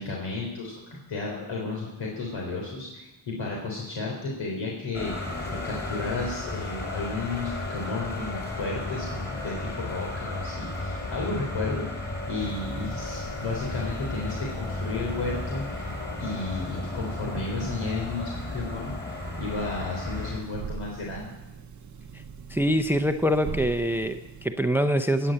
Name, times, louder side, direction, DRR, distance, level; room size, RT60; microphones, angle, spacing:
voice 1, 0.0-15.9 16.2-21.3, left 3 dB, 75° left, -2 dB, 3.7 m, -33 dB
sound 1, 4.9-20.4, left 2 dB, 20° left, 3.9 m, -34 dB
sound 2, 12.4-24.5, right 6 dB, 40° right, 0.9 m, -43 dB
voice 2, 22.5-25.3, equal, 5° right, 9 dB, 0.7 m, -24 dB
17.0 x 8.0 x 8.8 m, 1.0 s
cardioid pair, 105°, 46 cm